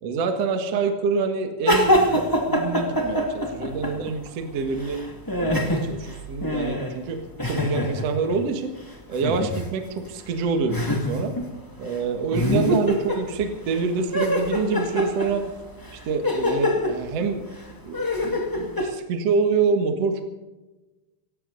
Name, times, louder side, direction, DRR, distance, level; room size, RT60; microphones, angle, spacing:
voice 1, 0.0-5.0 5.4-8.7 9.1-11.3 11.8-15.5 16.0-17.5 17.8-20.2, right 5 dB, 50° right, 5 dB, 2.3 m, -26 dB
sound 1, 1.6-4.3 4.6-8.4 9.2-9.7 10.0-10.1 10.7-11.5 11.8-12.0 12.3-13.8 14.1-18.9, left 1 dB, 10° left, 1.1 m, -25 dB
18.0 x 17.5 x 4.1 m, 1.1 s
omnidirectional pair, 4.2 m